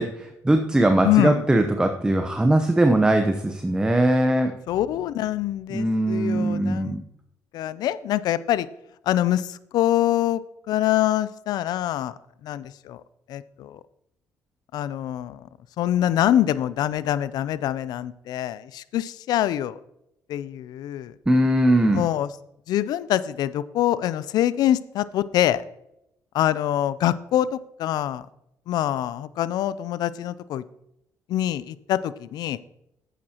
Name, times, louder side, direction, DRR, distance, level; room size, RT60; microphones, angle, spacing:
voice 1, 0.0-4.5 5.7-7.0 21.3-22.1, right 1 dB, 10° right, 5 dB, 0.8 m, -20 dB
voice 2, 1.0-1.5 4.7-7.0 7.5-8.7 9.1-12.1 12.4-13.0 13.3-13.8 14.7-15.5 15.8-19.8 20.3-21.1 21.9-22.3 22.7-25.6 26.3-28.3 28.7-30.6 31.3-32.6, left 12 dB, 75° left, 17 dB, 0.4 m, -25 dB
11.0 x 8.5 x 2.9 m, 0.82 s
supercardioid pair, 75°, 7 cm